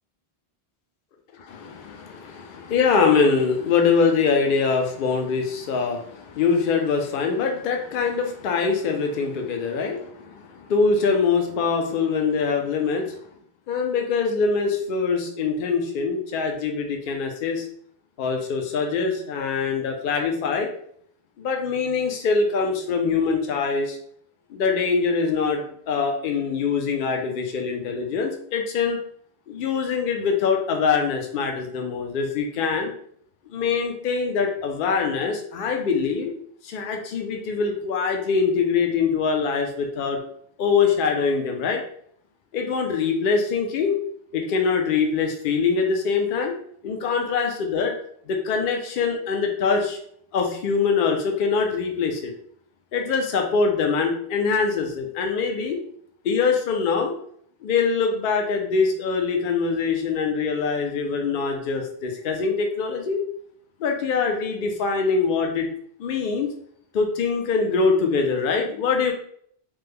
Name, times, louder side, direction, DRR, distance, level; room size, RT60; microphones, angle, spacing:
voice 1, 1.5-13.2 13.7-17.7 18.2-20.7 21.4-24.0 24.5-29.0 29.5-32.9 33.5-36.3 36.6-40.2 40.6-41.8 42.5-44.0 44.3-46.5 46.8-47.9 48.3-50.0 50.3-52.3 52.9-55.8 56.2-57.1 57.6-63.2 63.8-65.7 66.0-66.5 66.9-69.1, left 5 dB, 60° left, 3 dB, 0.6 m, -23 dB
3.1 x 2.1 x 3.4 m, 0.64 s
omnidirectional pair, 1.1 m